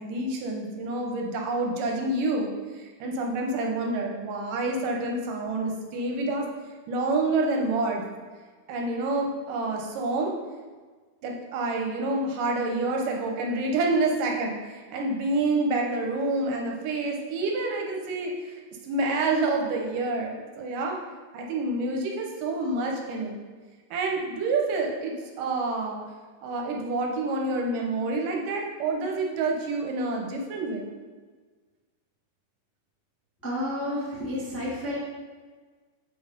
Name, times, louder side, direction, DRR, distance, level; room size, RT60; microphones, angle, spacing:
voice 1, 0.0-6.5 6.9-8.1 8.7-10.3 11.2-21.0 21.3-23.4 23.9-26.0 26.4-30.9, right 2 dB, 80° right, 1 dB, 2.7 m, -28 dB
voice 2, 33.4-35.0, left 1 dB, 5° left, -7 dB, 1.2 m, -30 dB
6.5 x 6.3 x 5.3 m, 1.4 s
omnidirectional pair, 3.7 m